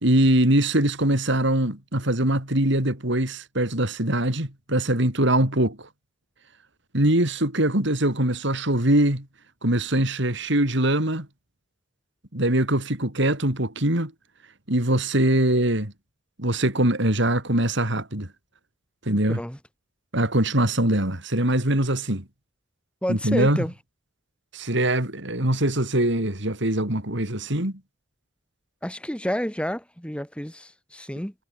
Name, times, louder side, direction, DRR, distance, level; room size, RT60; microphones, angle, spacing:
voice 1, 0.0-5.9 6.9-9.3 9.6-11.3 12.3-14.1 14.7-15.9 16.4-18.3 19.0-19.4 20.1-22.2 23.1-23.6 24.5-27.8, right 1 dB, 65° right, 4.8 m, -22 dB
voice 2, 23.0-23.7 28.8-31.3, equal, 5° left, 5.5 m, -30 dB
head